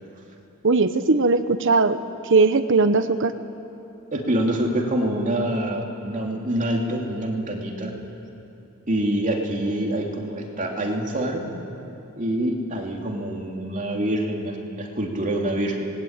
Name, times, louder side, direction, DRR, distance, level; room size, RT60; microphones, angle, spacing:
voice 1, 0.6-2.0 2.2-3.3, right 3 dB, 60° right, 10 dB, 0.9 m, -19 dB
voice 2, 4.1-7.9 8.9-11.5 12.2-15.9, right 1 dB, 35° right, 0 dB, 2.9 m, -26 dB
26.0 x 21.0 x 9.0 m, 2.8 s
head